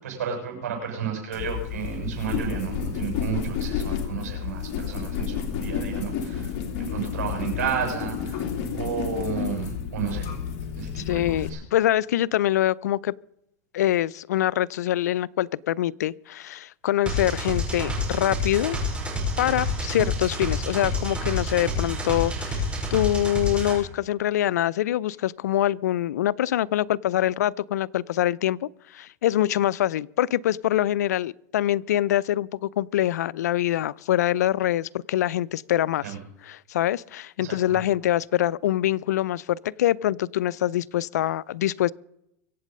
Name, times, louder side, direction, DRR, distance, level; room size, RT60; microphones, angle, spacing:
voice 1, 0.0-6.5 6.8-8.4 8.7-10.3 10.8-11.6 19.9-20.0 22.8-22.9 36.0-36.2 37.4-37.8, right 7 dB, 90° right, 7.2 m, -32 dB
sound 1, 1.3-11.5, left 7 dB, 50° left, 2.8 m, -31 dB
voice 2, 11.0-13.2 13.7-18.8 19.4-36.1 36.4-41.9, left 13 dB, 90° left, 0.4 m, -24 dB
sound 2, 17.1-23.8, left 1 dB, 15° right, 6.4 m, -28 dB
23.5 x 8.3 x 5.3 m
supercardioid pair, 125°, 9 cm